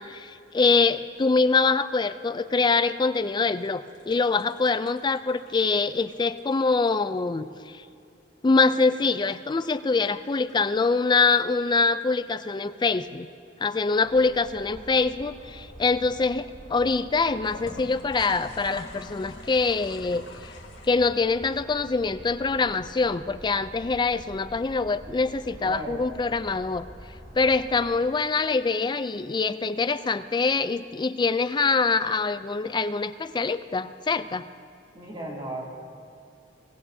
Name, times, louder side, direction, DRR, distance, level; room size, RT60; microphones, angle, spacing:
voice 1, 0.0-7.9 8.4-13.3 13.6-20.5 20.8-26.8 27.3-34.5, left 4 dB, 25° left, 12 dB, 0.4 m, -24 dB
sound 1, 3.6-7.2 8.5-10.5 11.2-12.0 17.4-20.9, left 3 dB, 75° left, 1.6 m, -46 dB
sound 2, 14.0-27.9, equal, 50° right, 3.0 m, -46 dB
voice 2, 25.6-26.0 34.9-35.6, right 1 dB, 25° right, -3 dB, 2.7 m, -35 dB
23.0 x 17.5 x 2.7 m, 2.5 s
head